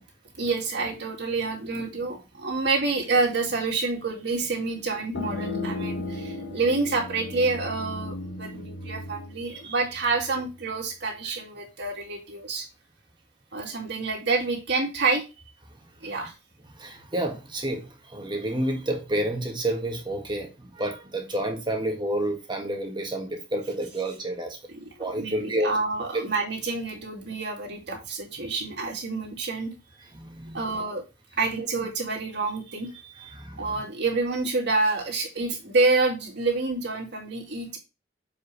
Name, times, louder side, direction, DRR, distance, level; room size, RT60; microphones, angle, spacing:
voice 1, 0.4-12.6 13.5-15.2 16.0-16.3 24.7-29.7 30.5-31.0 31.4-37.8, right 3 dB, 65° right, 2.6 m, -28 dB
sound 1, 5.1-10.5, left 2 dB, 85° left, 1.1 m, -35 dB
voice 2, 16.8-24.6 25.0-25.7 30.1-30.7 33.3-33.7, right 1 dB, 25° right, 1.6 m, -30 dB
7.2 x 5.1 x 3.3 m
head